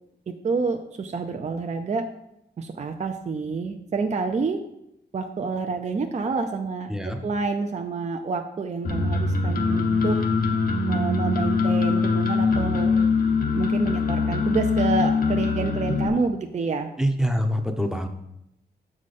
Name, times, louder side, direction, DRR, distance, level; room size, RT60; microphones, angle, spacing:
voice 1, 0.3-2.0 2.6-4.6 5.1-10.2 10.9-13.0 13.5-16.9, right 4 dB, 40° right, 5 dB, 0.5 m, -28 dB
sound 1, 8.8-16.1, left 4 dB, 55° left, 0.9 m, -23 dB
voice 2, 17.0-18.1, equal, 5° right, 5 dB, 0.7 m, -25 dB
7.2 x 4.9 x 4.2 m, 0.80 s
wide cardioid pair, 110°, 18 cm